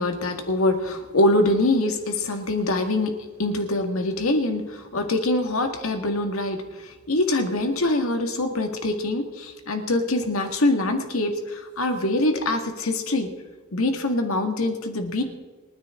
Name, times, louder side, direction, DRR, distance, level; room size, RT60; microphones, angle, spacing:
voice 1, 0.0-3.1 3.4-13.3 13.7-15.2, left 2 dB, 90° left, 5 dB, 2.0 m, -24 dB
28.0 x 9.7 x 3.8 m, 1.3 s
head